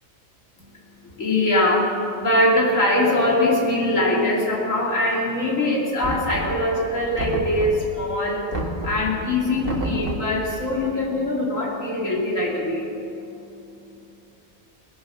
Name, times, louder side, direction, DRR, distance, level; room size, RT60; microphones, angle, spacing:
voice 1, 0.6-12.9, left 1 dB, 65° left, -3 dB, 3.1 m, -22 dB
Knock, 6.0-6.7 7.2-8.0 8.5-9.1 9.6-10.4, right 1 dB, 40° right, 1.8 m, -29 dB
18.5 x 9.7 x 7.0 m, 2.8 s
omnidirectional pair, 1.5 m